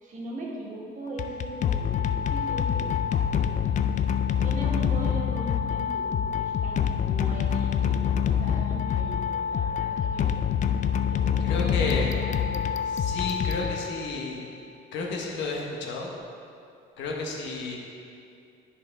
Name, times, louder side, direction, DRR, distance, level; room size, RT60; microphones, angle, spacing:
voice 1, 0.0-3.0 3.3-3.7 4.4-10.4 11.1-12.0 12.3-12.8, right 2 dB, 45° right, -3 dB, 1.6 m, -39 dB
sound 1, 1.1-14.3, left 8 dB, 40° left, 0.4 m, -26 dB
voice 2, 11.4-12.1 12.9-14.4 14.9-16.1 17.0-17.8, left 3 dB, 80° left, -1 dB, 1.3 m, -31 dB
10.5 x 5.6 x 3.7 m, 2.5 s
cardioid pair, 130°, 19 cm